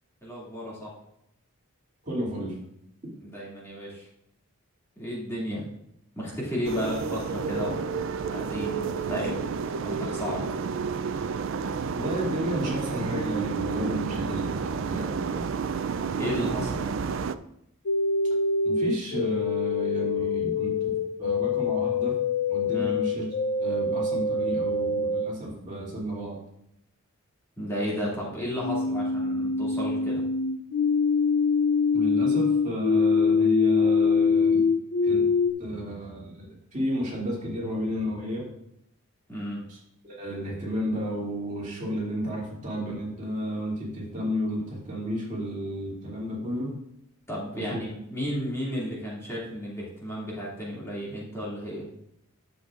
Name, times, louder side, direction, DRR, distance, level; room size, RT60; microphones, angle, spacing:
voice 1, 0.2-0.9 3.2-4.1 5.0-5.6 6.1-9.6 9.8-10.5 16.1-16.9 22.7-23.0 27.6-30.2 39.3-39.6 47.3-51.9, equal, 10° left, -7 dB, 2.4 m, -33 dB
voice 2, 2.0-2.6 11.9-15.4 18.6-20.9 21.2-22.1 22.5-23.2 23.6-26.4 31.9-34.7 35.0-35.3 35.6-38.4 39.7-39.8 40.0-46.7 47.5-47.8, equal, 35° right, -5 dB, 2.6 m, -32 dB
sound 1, 6.6-17.4, right 5 dB, 55° right, 0.3 m, -30 dB
sound 2, 17.9-25.3 28.6-35.5, left 4 dB, 60° left, 0.5 m, -24 dB
11.0 x 7.3 x 2.5 m, 0.78 s
head